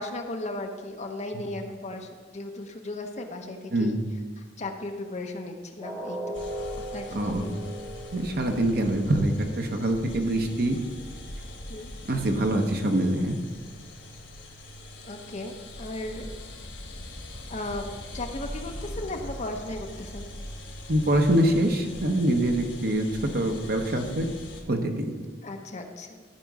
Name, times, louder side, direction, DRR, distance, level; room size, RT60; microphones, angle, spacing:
voice 1, 0.0-4.0 4.4-6.4 6.9-7.5 11.7-11.9 15.0-16.3 17.5-17.9 18.1-20.3 25.4-26.2, left 2 dB, 40° left, 4 dB, 0.9 m, -36 dB
sound 1, 5.8-11.8 12.2-12.4 12.8-12.9, right 1 dB, 15° right, 1.6 m, -40 dB
sound 2, 6.3-24.6, left 1 dB, 85° left, 1.6 m, -41 dB
voice 2, 7.1-7.5 8.1-10.8 12.1-13.3 20.9-24.3 24.7-25.1, right 1 dB, 55° right, 4 dB, 1.0 m, -24 dB
13.0 x 5.3 x 4.8 m, 1.5 s
head